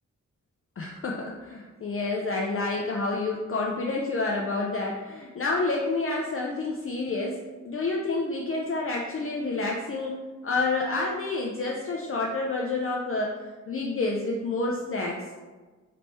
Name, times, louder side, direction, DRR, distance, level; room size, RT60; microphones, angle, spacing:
voice 1, 0.8-7.4 7.6-15.2, left 3 dB, 45° left, -2 dB, 0.4 m, -29 dB
3.3 x 3.1 x 4.1 m, 1.3 s
wide cardioid pair, 155°, 32 cm